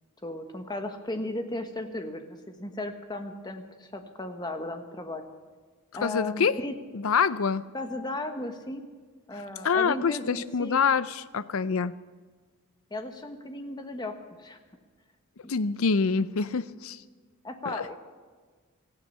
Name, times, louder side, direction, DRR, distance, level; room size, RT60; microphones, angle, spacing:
voice 1, 0.2-5.2 5.9-6.7 7.7-8.9 9.3-10.8 12.9-14.6 17.4-18.0, left 1 dB, 20° left, 6 dB, 1.2 m, -35 dB
voice 2, 6.0-6.6 6.9-7.7 9.6-11.9 15.5-17.0 17.7-17.9, left 5 dB, 75° left, 16 dB, 0.5 m, -26 dB
17.0 x 15.0 x 5.5 m, 1.5 s
head